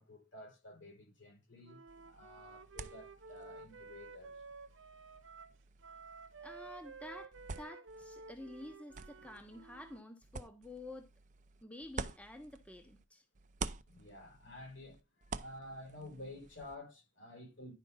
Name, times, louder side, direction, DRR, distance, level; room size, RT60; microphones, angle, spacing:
voice 1, 0.0-4.4 13.9-17.7, left 1 dB, 75° left, 5.5 m, -51 dB
Wind instrument woodwind instrument, 1.6-10.1, right 4 dB, 85° right, 0.9 m, -53 dB
sound 1, 1.9-13.1 13.4-16.8, right 4 dB, 40° right, 0.6 m, -49 dB
voice 2, 6.4-11.1 11.6-13.2, left 1 dB, 5° left, 0.9 m, -50 dB
10.5 x 5.2 x 3.9 m
head